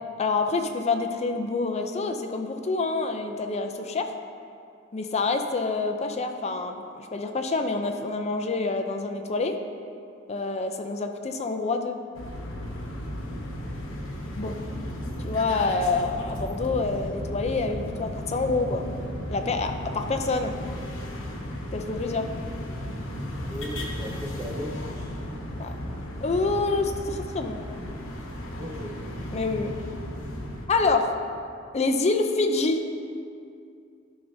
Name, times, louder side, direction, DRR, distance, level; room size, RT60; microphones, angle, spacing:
voice 1, 0.2-4.1 4.9-9.5 10.3-12.0 14.4-14.5 15.2-18.9 19.3-20.5 21.7-22.3 25.6-25.7 26.2-27.6 29.3-29.7 30.7-31.2 31.7-32.8, left 3 dB, 35° left, 5 dB, 0.5 m, -27 dB
sound 1, 12.1-30.7, equal, 70° left, 1.1 m, -35 dB
voice 2, 14.4-14.8 23.5-25.2 28.6-29.0, equal, 15° right, -4 dB, 0.6 m, -37 dB
12.5 x 5.9 x 2.7 m, 2.4 s
head